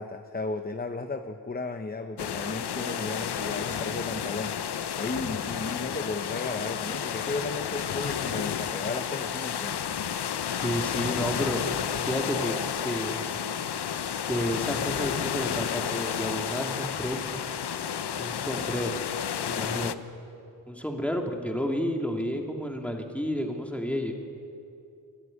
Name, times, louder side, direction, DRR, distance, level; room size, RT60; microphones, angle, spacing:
voice 1, 0.0-9.8, left 3 dB, 25° left, 7 dB, 0.8 m, -35 dB
sound 1, 2.2-19.9, left 8 dB, 80° left, 0.8 m, -31 dB
voice 2, 10.5-11.6 12.1-12.6 12.8-13.2 14.3-17.2 18.2-19.0 19.5-19.9 20.7-24.1, equal, 5° left, 2 dB, 2.7 m, -31 dB
24.5 x 13.0 x 9.7 m, 2.7 s
wide cardioid pair, 85°, 39 cm